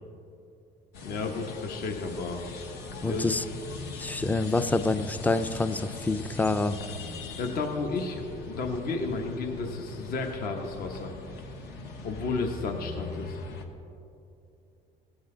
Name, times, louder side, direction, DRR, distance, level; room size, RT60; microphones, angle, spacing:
sound 1, 0.9-13.6, left 3 dB, 80° left, 1.2 m, -41 dB
voice 1, 1.0-2.4 3.0-3.2 7.4-8.2 8.5-11.1 12.0-13.4, left 3 dB, 60° left, 2 dB, 1.0 m, -32 dB
sound 2, 2.6-8.7, left 5 dB, 40° left, 0.9 m, -46 dB
voice 2, 3.0-3.4 4.0-6.8, left 2 dB, 10° left, 12 dB, 0.4 m, -27 dB
16.0 x 8.0 x 3.8 m, 2.7 s
cardioid pair, 110°, 17 cm